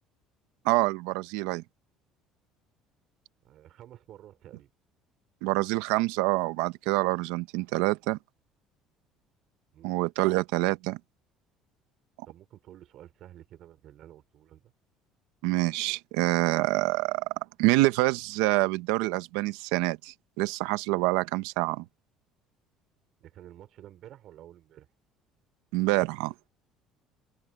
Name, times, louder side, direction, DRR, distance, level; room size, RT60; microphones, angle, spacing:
voice 1, 0.6-1.6 5.4-8.2 9.8-11.0 15.4-17.3 17.6-21.8 25.7-26.3, right 21 dB, 85° right, 0.9 m, -26 dB
voice 2, 3.4-4.7 9.7-9.9 12.3-14.7 23.2-24.9, right 12 dB, 60° right, 3.7 m, -51 dB
supercardioid pair, 100°, 0 cm